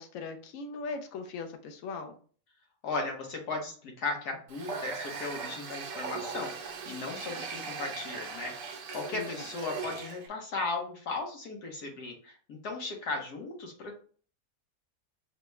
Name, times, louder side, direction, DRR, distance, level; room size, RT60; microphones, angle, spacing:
voice 1, 0.0-2.1 9.1-9.5, left 4 dB, 65° left, 6 dB, 1.1 m, -39 dB
voice 2, 2.8-8.5 8.9-14.0, left 3 dB, 90° left, 1 dB, 1.6 m, -36 dB
Water tap faucet, 4.5-10.3, right 5 dB, 65° right, 1.0 m, -39 dB
5.8 x 2.3 x 3.1 m, 0.43 s
omnidirectional pair, 1.6 m